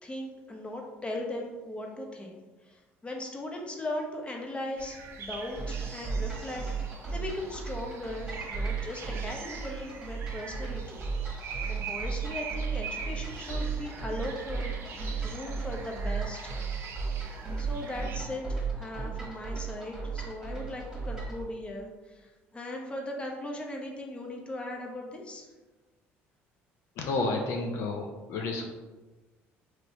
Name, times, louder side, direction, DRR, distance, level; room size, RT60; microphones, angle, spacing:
voice 1, 0.0-11.0 11.4-16.6 17.6-25.5, left 1 dB, 20° left, 1 dB, 0.7 m, -38 dB
sound 1, 4.8-18.2, right 5 dB, 50° right, 0.5 m, -43 dB
sound 2, 5.6-21.4, right 5 dB, 10° right, 1.3 m, -35 dB
voice 2, 27.0-28.7, left 3 dB, 70° left, 2 dB, 0.4 m, -31 dB
3.0 x 2.9 x 2.6 m, 1.2 s
supercardioid pair, 85°, 5 cm